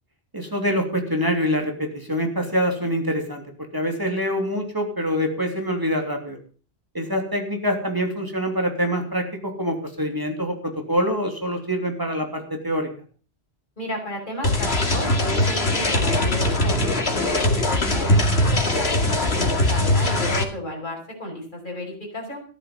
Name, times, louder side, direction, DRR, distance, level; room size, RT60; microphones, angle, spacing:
voice 1, 0.3-3.4 3.7-6.4 6.9-12.9, equal, 20° right, 3 dB, 3.1 m, -25 dB
voice 2, 13.8-22.4, left 1 dB, 50° left, -2 dB, 6.1 m, -33 dB
sound 1, 14.4-20.4, left 1 dB, 80° left, 2.5 m, -21 dB
14.0 x 12.5 x 5.5 m, 0.40 s
omnidirectional pair, 1.1 m